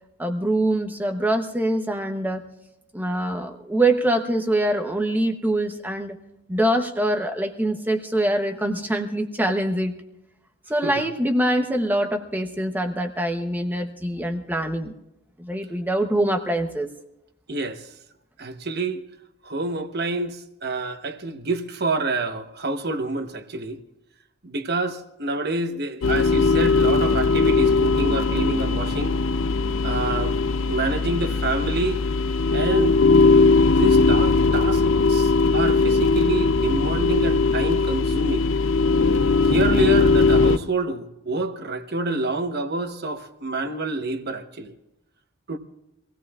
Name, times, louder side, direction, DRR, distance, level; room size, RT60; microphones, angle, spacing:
voice 1, 0.2-2.4 2.9-6.2 6.5-10.0 10.7-14.9 15.4-16.9, right 1 dB, 10° right, 0.8 m, -24 dB
voice 2, 17.5-17.8 18.4-19.0 19.4-23.8 24.4-29.1 29.8-30.4 30.7-32.0 32.5-33.0 33.6-34.8 35.1-38.5 39.4-44.7 45.5-45.6, right 2 dB, 50° right, 1.1 m, -27 dB
sound 1, 26.0-40.6, left 3 dB, 65° left, 0.5 m, -19 dB
25.0 x 17.0 x 2.4 m
head